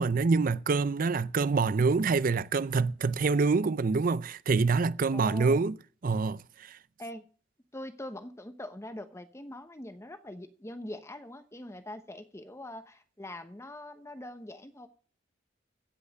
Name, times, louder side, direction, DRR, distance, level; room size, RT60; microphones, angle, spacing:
voice 1, 0.0-5.8 6.0-6.4 6.7-6.8, right 4 dB, 50° right, 0.5 m, -26 dB
voice 2, 5.1-5.6 7.0-7.3 7.7-14.9, left 1 dB, 15° left, 0.9 m, -43 dB
16.0 x 5.7 x 6.5 m
head